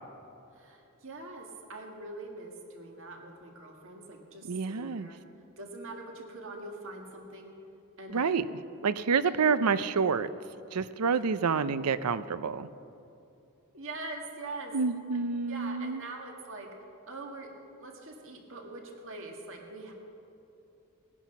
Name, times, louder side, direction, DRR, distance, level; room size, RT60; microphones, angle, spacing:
voice 1, 0.6-5.2 5.6-7.5 8.0-8.5 13.7-14.8 15.5-16.7 17.1-19.9, right 2 dB, 60° right, 2 dB, 1.9 m, -43 dB
voice 2, 4.5-5.1 8.1-8.5 8.8-10.3 10.7-12.7 14.7-16.0, right 5 dB, 85° right, 14 dB, 0.6 m, -28 dB
20.0 x 10.0 x 6.0 m, 2.8 s
head